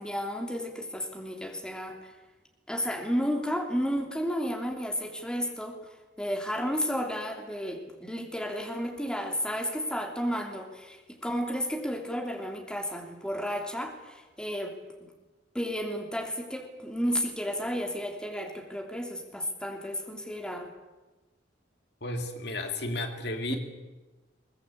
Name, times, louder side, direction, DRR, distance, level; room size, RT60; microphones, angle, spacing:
voice 1, 0.0-2.1 2.7-15.1 15.5-20.7 23.5-23.6, equal, 5° left, 2 dB, 3.1 m, -32 dB
voice 2, 22.0-23.6, left 2 dB, 65° left, 5 dB, 2.7 m, -33 dB
22.0 x 20.5 x 8.5 m, 1.2 s
head